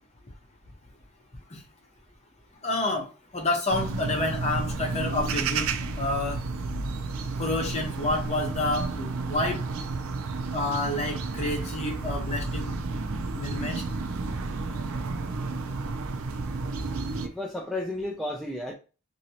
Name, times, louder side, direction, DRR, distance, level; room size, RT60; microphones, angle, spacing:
voice 1, 2.6-3.1 3.3-6.4 7.4-9.6 10.5-12.8 13.3-13.8, left 2 dB, 30° left, 0.7 m, -29 dB
sound 1, 3.7-17.3, right 3 dB, 75° right, 0.4 m, -31 dB
voice 2, 17.2-18.7, left 1 dB, ahead, 0.3 m, -32 dB
2.9 x 2.7 x 2.8 m
head